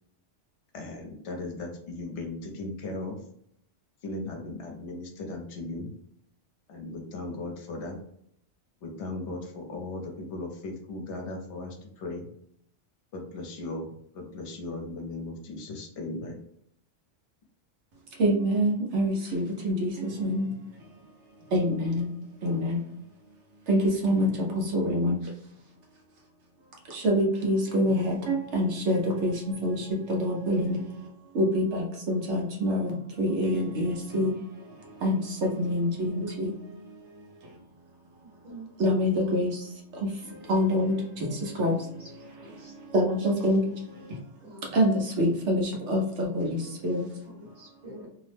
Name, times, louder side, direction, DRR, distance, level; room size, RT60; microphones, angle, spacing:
voice 1, 0.7-3.2 4.0-5.9 6.7-8.0 8.8-12.3 13.1-13.9 14.1-16.4, left 2 dB, 75° left, 2 dB, 0.9 m, -37 dB
voice 2, 18.1-21.1 21.4-23.0 23.7-25.3 26.8-37.6 38.8-42.1 42.6-44.2 44.7-47.4, equal, 75° right, 0 dB, 1.0 m, -27 dB
voice 3, 38.2-39.1 41.6-42.1 42.4-42.7 44.4-44.7 46.6-46.7 47.2-48.1, right 1 dB, 40° right, -5 dB, 1.2 m, -47 dB
2.7 x 2.0 x 3.2 m, 0.70 s
omnidirectional pair, 1.2 m